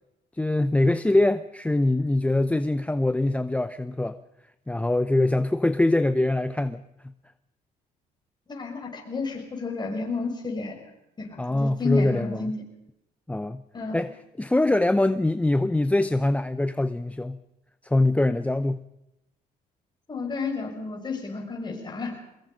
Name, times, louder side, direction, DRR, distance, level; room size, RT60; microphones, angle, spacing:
voice 1, 0.3-4.2 4.7-6.8 11.4-12.5 13.3-13.6 13.9-14.1 14.4-17.4 17.8-18.8, left 2 dB, 10° left, 12 dB, 0.7 m, -23 dB
voice 2, 8.5-10.8 11.2-12.6 13.7-14.0 20.1-22.2, left 4 dB, 25° left, 2 dB, 6.7 m, -31 dB
23.5 x 21.5 x 5.3 m, 0.86 s
cardioid pair, 110°, 17 cm